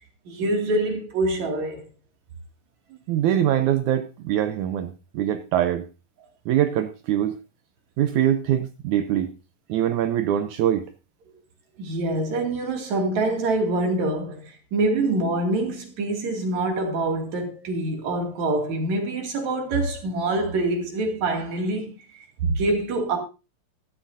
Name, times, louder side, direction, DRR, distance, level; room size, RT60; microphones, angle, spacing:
voice 1, 0.3-1.8 11.8-23.2, right 2 dB, 55° right, 3.6 m, -25 dB
voice 2, 3.1-5.9 6.5-7.4 8.0-9.3 9.7-10.9, right 11 dB, 75° right, 1.9 m, -23 dB
14.0 x 13.0 x 2.7 m
omnidirectional pair, 3.9 m